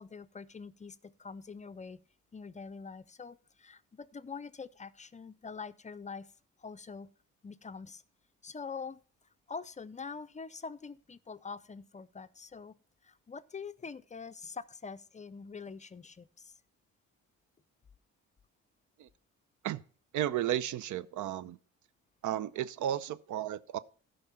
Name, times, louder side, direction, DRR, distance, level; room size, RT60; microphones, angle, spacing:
voice 1, 0.0-2.0 2.3-6.3 6.6-7.1 7.4-8.0 8.4-9.0 9.5-12.8 13.0-16.5, left 5 dB, 25° left, 0.4 m, -44 dB
voice 2, 20.1-21.6 22.2-23.8, right 11 dB, 75° right, 0.6 m, -33 dB
12.5 x 5.4 x 5.7 m
cardioid pair, 90°, 30 cm